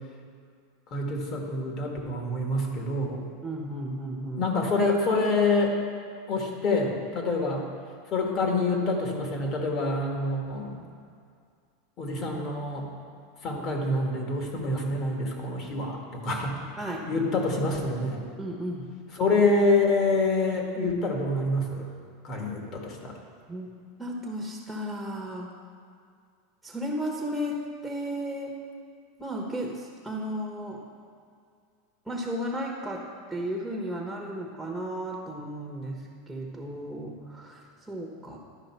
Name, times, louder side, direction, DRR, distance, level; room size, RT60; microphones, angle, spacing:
voice 1, 0.9-3.2 4.4-5.8 6.3-7.6 8.1-10.8 12.0-12.9 13.4-16.6 17.1-18.3 19.2-21.9 22.2-23.1, left 2 dB, 40° left, 1 dB, 1.8 m, -26 dB
voice 2, 3.4-4.5 7.2-7.3 16.8-17.1 18.4-18.9 23.5-23.7 24.0-25.5 26.6-28.6 29.2-30.8 32.1-38.4, equal, ahead, -2 dB, 1.2 m, -34 dB
12.0 x 5.1 x 4.6 m, 2.2 s
supercardioid pair, 115°, 0 cm